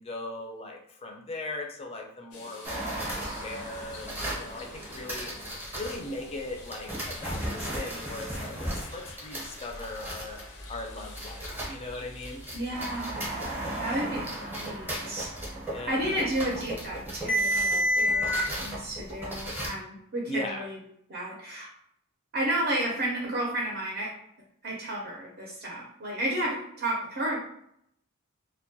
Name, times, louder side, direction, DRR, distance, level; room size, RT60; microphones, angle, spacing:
voice 1, 0.0-5.3 5.7-10.4 10.7-12.5 15.7-16.2 20.3-20.6, left 2 dB, 30° left, 3 dB, 0.4 m, -39 dB
sound 1, 2.3-14.5 15.0-15.1 17.4-17.5, left 3 dB, 80° left, 0.5 m, -49 dB
sound 2, 2.6-6.0 6.7-11.9 12.2-19.7, equal, 10° right, 0.7 m, -32 dB
voice 2, 12.5-14.2 14.5-15.3 15.9-20.8 21.1-21.7 22.3-24.1 24.6-27.4, right 1 dB, 45° right, -3 dB, 0.5 m, -32 dB
2.2 x 2.1 x 2.6 m, 0.73 s
head